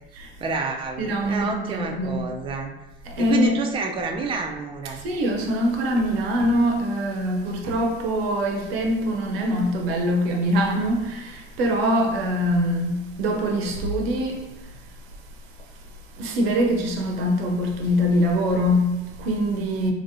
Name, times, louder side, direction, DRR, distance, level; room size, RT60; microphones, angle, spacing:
voice 1, 0.4-2.7 3.2-5.0, right 4 dB, 20° right, 0.4 m, -28 dB
voice 2, 1.0-2.3 3.1-3.6 4.9-14.4 16.2-19.9, equal, 85° right, 0.6 m, -23 dB
3.0 x 2.6 x 2.6 m
hypercardioid pair, 75°, 29 cm